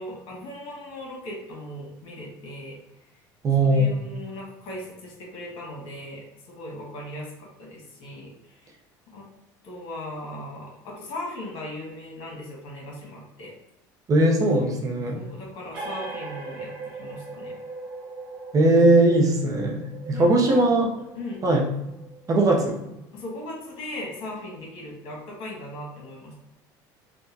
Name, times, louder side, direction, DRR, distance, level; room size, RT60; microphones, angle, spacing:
voice 1, 0.0-2.8 3.0-3.2 3.6-8.7 9.1-9.3 9.6-13.5 15.1-17.6 20.1-20.6 21.1-21.4 22.5-22.7 23.1-26.3, left 1 dB, 65° left, -3 dB, 1.4 m, -38 dB
voice 2, 3.4-3.9 14.1-15.2 18.5-20.9 21.4-21.6 22.3-22.7, right 2 dB, 35° right, 0 dB, 0.7 m, -19 dB
sound 1, 15.7-23.0, right 4 dB, 60° right, 1.1 m, -40 dB
3.7 x 2.3 x 2.7 m, 0.91 s
supercardioid pair, 110°, 10 cm